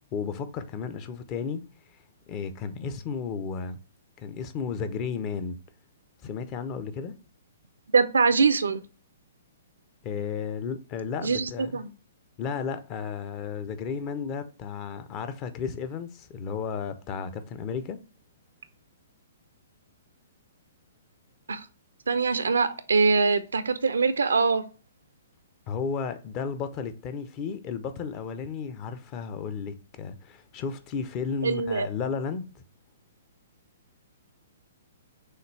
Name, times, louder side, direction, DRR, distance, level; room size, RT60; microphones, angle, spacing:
voice 1, 0.1-1.6 2.3-3.8 4.2-5.6 6.2-7.1 10.0-11.7 12.4-18.0 25.7-32.6, left 6 dB, 30° left, 0.6 m, -33 dB
voice 2, 7.9-8.8 11.2-11.9 21.5-21.7 22.1-24.6 31.4-31.9, right 4 dB, 70° right, 0.5 m, -23 dB
6.4 x 2.4 x 3.2 m
figure-of-eight pair, 120°, 0 cm